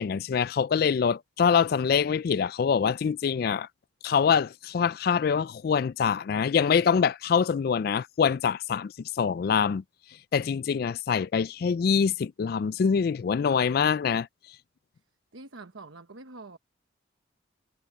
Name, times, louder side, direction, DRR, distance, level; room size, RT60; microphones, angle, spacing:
voice 1, 0.0-3.7 4.0-9.8 10.3-14.3, left 6 dB, 50° left, 0.3 m, -25 dB
voice 2, 15.3-16.6, right 3 dB, 85° right, 1.2 m, -46 dB
head